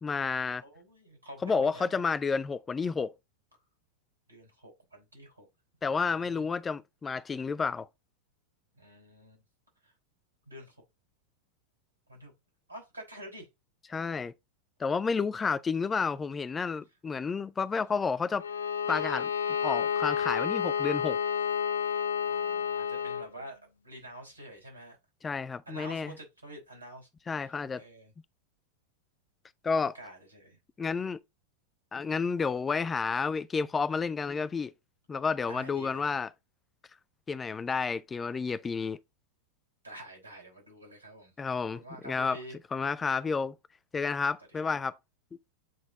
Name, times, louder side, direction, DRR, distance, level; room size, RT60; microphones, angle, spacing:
voice 1, 0.0-0.6 1.4-3.1 5.8-7.9 13.9-14.3 14.8-18.4 18.9-19.3 19.6-21.2 25.2-26.1 27.3-27.8 29.6-30.0 30.8-31.2 31.9-34.7 35.1-36.3 37.3-39.0 41.4-42.4 42.7-43.5 43.9-45.0, left 5 dB, 15° left, 0.4 m, -30 dB
voice 2, 0.6-2.0 4.3-5.5 5.8-6.4 8.8-9.4 9.8-9.9 10.5-10.7 12.1-12.3 12.7-13.5 22.2-25.0 25.6-27.1 27.3-28.1 29.9-30.6 35.5-36.2 39.8-41.3 41.6-42.6 44.6-44.8, right 1 dB, 80° right, 5.0 m, -48 dB
Bowed string instrument, 18.4-23.3, left 8 dB, 70° left, 0.5 m, -30 dB
9.1 x 4.1 x 4.0 m
figure-of-eight pair, 90°, 0 cm